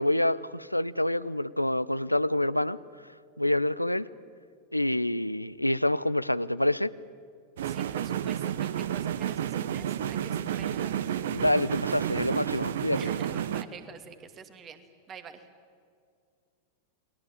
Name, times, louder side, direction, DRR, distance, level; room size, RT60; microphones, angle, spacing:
voice 1, 0.0-2.8 3.4-4.1 4.7-6.9 11.3-13.1, left 1 dB, 90° left, 16 dB, 0.6 m, -27 dB
voice 2, 7.6-11.0 13.0-15.4, right 7 dB, 30° right, 9 dB, 2.4 m, -47 dB
sound 1, 7.6-13.6, right 10 dB, 60° right, 1.0 m, -31 dB
29.5 x 21.5 x 8.9 m, 2.2 s
figure-of-eight pair, 90°, 0 cm